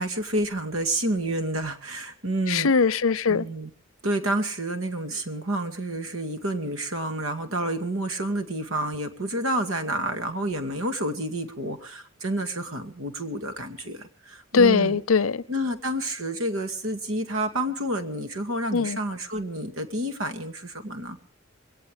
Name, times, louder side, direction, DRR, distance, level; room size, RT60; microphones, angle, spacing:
voice 1, 0.0-2.7 3.3-3.7 4.0-15.0 15.5-21.2, right 1 dB, 75° right, 2.3 m, -29 dB
voice 2, 2.5-3.5 14.5-15.4 18.7-19.0, left 5 dB, 75° left, 0.7 m, -21 dB
22.0 x 18.0 x 3.5 m
head